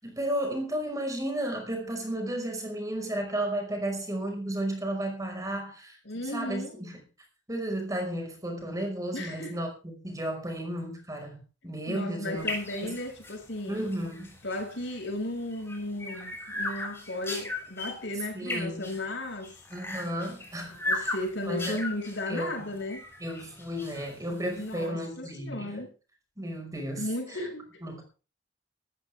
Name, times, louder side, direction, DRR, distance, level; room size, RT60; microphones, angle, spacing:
voice 1, 0.0-6.0 6.2-7.0 7.5-9.7 10.0-12.4 12.8-13.0 13.7-14.4 18.3-18.9 19.7-21.1 21.4-21.8 22.3-22.7 23.2-25.8 26.4-27.1 27.8-28.0, right 1 dB, 20° right, 5.4 m, -33 dB
voice 2, 6.0-6.8 9.1-9.6 11.9-13.9 14.4-19.5 20.7-23.0 24.5-25.9 27.0-27.7, left 1 dB, 70° left, 6.3 m, -35 dB
sound 1, 12.3-24.9, left 2 dB, 15° left, 6.7 m, -38 dB
18.5 x 14.0 x 3.6 m
head